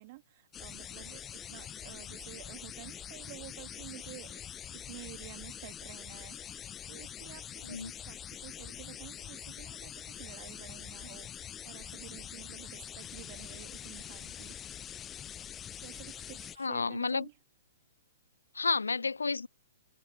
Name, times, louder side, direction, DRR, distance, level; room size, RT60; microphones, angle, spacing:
voice 1, 0.0-4.4 4.7-14.9 15.8-17.4, right 21 dB, 40° right, 2.1 m, -51 dB
sound 1, 0.5-16.6, left 9 dB, 20° left, 0.4 m, -45 dB
voice 2, 16.6-17.3 18.5-19.5, left 4 dB, 80° left, 0.4 m, -31 dB
open air
figure-of-eight pair, 120°, 0 cm